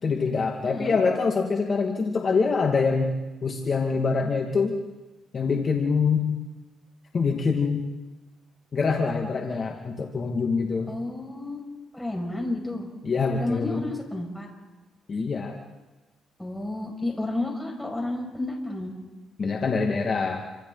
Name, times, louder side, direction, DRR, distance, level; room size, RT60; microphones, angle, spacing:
voice 1, 0.0-3.1 3.4-4.8 5.3-6.3 7.1-7.9 8.7-10.9 13.0-13.8 15.1-15.6 19.4-20.4, left 4 dB, 40° left, 1 dB, 2.4 m, -25 dB
voice 2, 0.6-0.9 10.9-11.6 11.9-12.9 13.4-14.5 16.4-18.9, left 2 dB, 10° left, 0 dB, 6.5 m, -31 dB
28.5 x 26.5 x 4.1 m, 1.1 s
cardioid pair, 90°, 0 cm